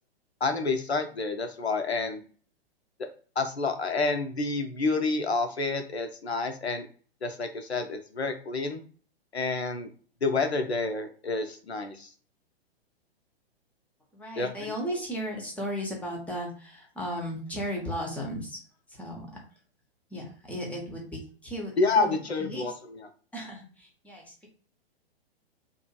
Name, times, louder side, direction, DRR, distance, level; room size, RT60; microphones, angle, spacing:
voice 1, 0.4-2.2 3.4-6.9 7.2-8.8 9.3-9.9 10.2-12.1 14.4-14.5 21.8-23.1, left 3 dB, 85° left, 7 dB, 0.6 m, -29 dB
voice 2, 14.1-18.6 19.0-19.3 20.1-22.7 23.3-24.5, equal, 5° left, -1 dB, 0.5 m, -35 dB
2.8 x 2.4 x 2.2 m, 0.42 s
figure-of-eight pair, 110°, 31 cm